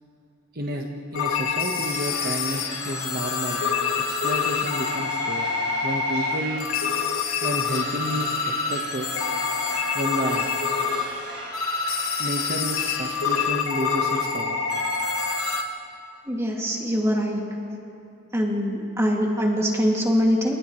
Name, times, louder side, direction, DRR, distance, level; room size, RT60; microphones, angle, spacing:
voice 1, 0.5-3.7 4.1-5.5 5.8-6.7 7.4-9.1 9.9-10.5 12.2-14.6, equal, 45° right, 1 dB, 1.4 m, -31 dB
sound 1, 1.1-15.6, left 5 dB, 85° left, 1.7 m, -26 dB
sound 2, 1.8-13.5, right 2 dB, 75° right, 6.8 m, -39 dB
voice 2, 16.3-17.4 18.3-20.6, equal, 15° right, -2 dB, 2.5 m, -23 dB
28.5 x 27.5 x 3.3 m, 2.5 s
head